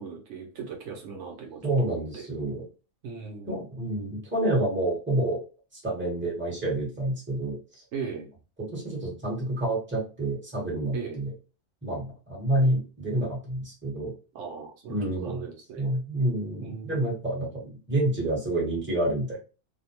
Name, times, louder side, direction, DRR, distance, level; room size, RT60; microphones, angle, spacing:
voice 1, 0.0-2.2 3.0-3.5 7.9-8.3 10.9-11.2 14.3-15.9 16.6-17.1, right 6 dB, 70° right, 1 dB, 0.9 m, -38 dB
voice 2, 1.6-2.6 3.5-5.4 5.7-7.8 8.7-11.3 11.8-14.1 14.9-15.4 15.8-19.4, right 1 dB, 10° right, -5 dB, 1.0 m, -28 dB
2.6 x 2.1 x 2.8 m, 0.33 s
omnidirectional pair, 1.3 m